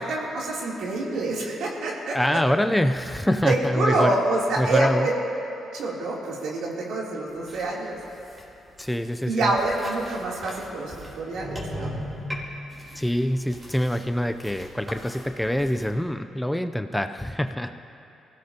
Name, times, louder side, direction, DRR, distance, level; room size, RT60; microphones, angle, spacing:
voice 1, 0.0-2.2 3.4-5.1 5.7-8.0 9.3-11.9, right 2 dB, 80° right, -4 dB, 3.1 m, -26 dB
voice 2, 2.1-4.1 4.6-5.1 8.8-9.5 13.0-17.7, equal, 5° left, 8 dB, 0.5 m, -25 dB
sound 1, 7.3-15.9, equal, 20° right, 3.7 m, -39 dB
23.5 x 16.5 x 2.9 m, 2.8 s
cardioid pair, 100°, 0 cm